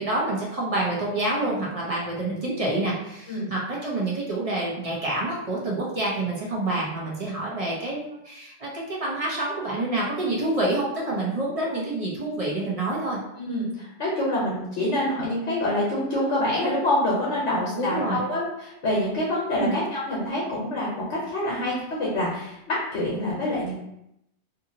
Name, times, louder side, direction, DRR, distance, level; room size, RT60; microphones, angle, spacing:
voice 1, 0.0-13.2 17.7-18.2 19.6-19.8, right 2 dB, 40° right, -4 dB, 0.6 m, -27 dB
voice 2, 13.4-23.8, left 1 dB, 70° left, -5 dB, 1.1 m, -26 dB
2.7 x 2.6 x 2.7 m, 0.82 s
omnidirectional pair, 1.3 m